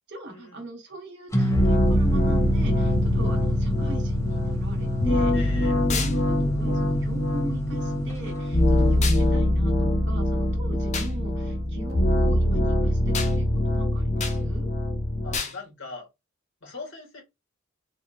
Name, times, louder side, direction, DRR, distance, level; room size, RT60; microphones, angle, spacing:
voice 1, 0.1-14.7, right 1 dB, 60° right, 1.6 m, -40 dB
sound 1, 1.3-8.2, equal, 15° left, 0.9 m, -29 dB
sound 2, 1.5-15.4, left 1 dB, 85° left, 1.2 m, -23 dB
voice 2, 5.3-5.8 15.2-16.1 16.6-17.2, left 3 dB, 70° left, 2.1 m, -40 dB
sound 3, 5.9-6.2 9.0-9.2 10.9-11.1 13.1-13.3 14.2-14.4 15.3-15.6, left 6 dB, 35° left, 0.8 m, -30 dB
4.2 x 2.5 x 4.3 m
head